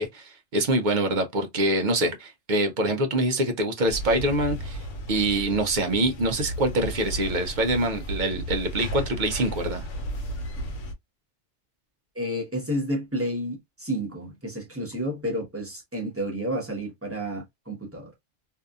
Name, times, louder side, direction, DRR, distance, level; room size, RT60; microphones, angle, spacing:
voice 1, 0.0-9.8, right 1 dB, 55° right, 0.5 m, -25 dB
sound 1, 3.9-10.9, right 1 dB, 80° left, 1.1 m, -34 dB
voice 2, 12.1-18.1, equal, 15° right, 0.8 m, -31 dB
2.7 x 2.4 x 2.3 m
omnidirectional pair, 1.3 m